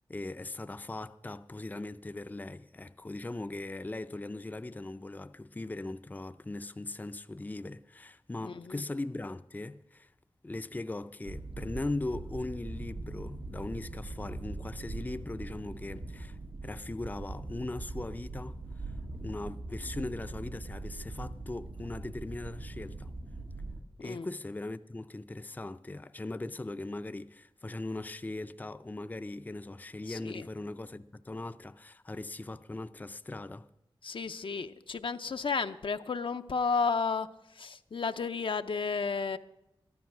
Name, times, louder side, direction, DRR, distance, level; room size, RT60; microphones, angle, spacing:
voice 1, 0.1-10.1 10.4-18.9 19.2-23.1 24.0-33.7, left 2 dB, 20° left, 0.4 m, -39 dB
voice 2, 8.4-8.8 24.0-24.3 30.1-30.5 34.0-37.3 37.5-39.4, left 5 dB, 70° left, 0.6 m, -32 dB
sound 1, 11.3-23.8, right 2 dB, 90° right, 1.4 m, -41 dB
13.5 x 12.0 x 6.0 m
wide cardioid pair, 60°, 9 cm